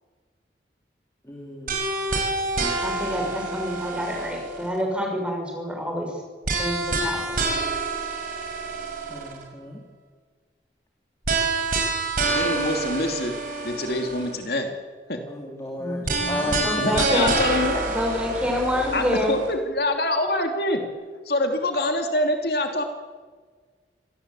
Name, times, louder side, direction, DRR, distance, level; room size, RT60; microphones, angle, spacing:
voice 1, 1.2-1.8 2.6-2.7 9.1-9.8 15.3-16.7 17.7-17.8, left 1 dB, 15° left, 0 dB, 2.9 m, -34 dB
sound 1, 1.7-4.8 6.4-9.4 11.2-14.4 16.0-19.5, right 3 dB, 50° right, 5.7 m, -27 dB
voice 2, 2.8-6.2 6.6-7.6 15.8-17.3 17.8-19.4, equal, 5° right, 2 dB, 6.0 m, -28 dB
voice 3, 12.3-13.3 13.6-14.7 15.1-15.2 16.8-17.8 18.9-20.8 21.2-22.8, left 1 dB, 60° left, 5 dB, 2.7 m, -25 dB
26.0 x 18.5 x 8.4 m, 1.5 s
head